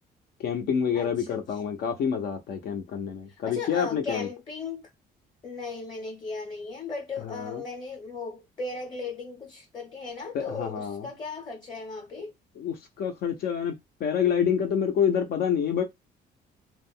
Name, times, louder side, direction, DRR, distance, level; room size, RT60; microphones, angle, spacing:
voice 1, 0.4-4.3 7.2-7.6 10.3-11.1 12.6-13.7 14.0-15.8, left 8 dB, 60° left, 0.6 m, -27 dB
voice 2, 0.9-1.4 3.4-4.8 5.4-12.3, left 4 dB, 25° left, 0.8 m, -37 dB
2.3 x 2.1 x 3.5 m
cardioid pair, 135°, 18 cm